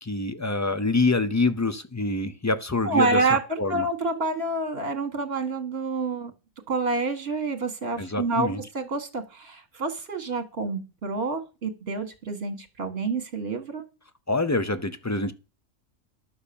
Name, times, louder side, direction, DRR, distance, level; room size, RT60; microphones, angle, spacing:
voice 1, 0.0-3.2 3.6-3.9 8.0-8.6 14.3-15.3, left 3 dB, 25° left, 0.3 m, -25 dB
voice 2, 2.8-6.3 6.7-13.8, right 3 dB, 50° right, 2.0 m, -28 dB
11.5 x 6.8 x 7.1 m
omnidirectional pair, 1.4 m